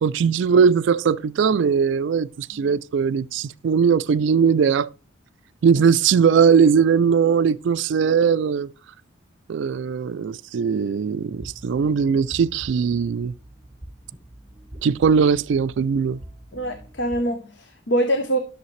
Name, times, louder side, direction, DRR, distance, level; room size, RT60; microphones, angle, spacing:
voice 1, 0.0-4.9 5.6-8.7 9.5-13.3 14.8-16.2, right 6 dB, 65° right, 0.3 m, -19 dB
sound 1, 11.3-17.2, right 1 dB, 25° right, 1.5 m, -44 dB
voice 2, 16.5-18.4, right 1 dB, 60° left, 0.8 m, -24 dB
11.0 x 6.5 x 3.2 m
head